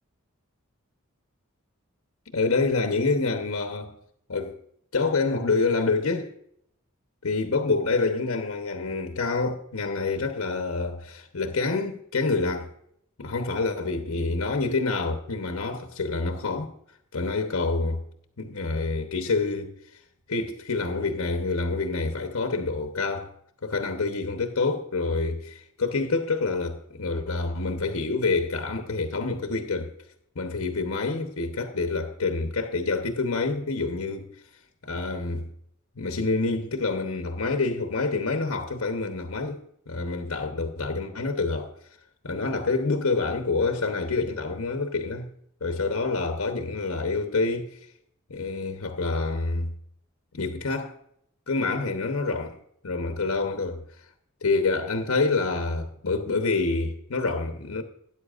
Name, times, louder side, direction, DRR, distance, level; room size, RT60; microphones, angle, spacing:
voice 1, 2.3-3.9 4.3-4.6 4.9-6.3 7.2-12.7 13.2-16.7 17.1-18.0 18.4-19.7 20.3-23.3 23.6-29.9 30.3-34.3 34.8-35.5 36.0-41.7 42.2-45.3 45.6-47.8 48.3-49.7 50.3-51.0 51.5-52.6 52.8-53.8 54.4-57.8, left 3 dB, 80° left, 1.0 m, -27 dB
13.0 x 9.7 x 2.5 m
head